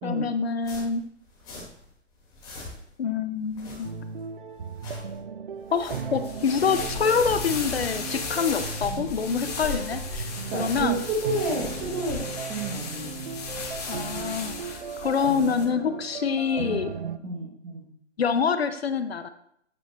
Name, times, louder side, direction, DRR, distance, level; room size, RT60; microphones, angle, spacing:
voice 1, 0.0-1.0 3.0-3.9 5.7-11.0 13.9-16.9 18.2-19.3, left 6 dB, 55° left, 10 dB, 0.6 m, -26 dB
sound 1, 0.6-1.9 2.2-3.0 3.4-4.2 4.6-5.2 5.6-6.3 6.7-7.7 8.2-9.0 9.4-11.1 11.4-12.1, left 2 dB, 10° left, 1.2 m, -44 dB
sound 2, 3.8-17.2, right 6 dB, 45° right, 0.4 m, -37 dB
sound 3, 6.1-15.6, left 4 dB, 35° left, 1.2 m, -35 dB
voice 2, 10.5-12.2 12.5-13.3 16.7-16.9 17.2-17.8, right 2 dB, 10° right, -2 dB, 0.8 m, -30 dB
9.1 x 5.2 x 3.0 m, 0.68 s
figure-of-eight pair, 145°, 37 cm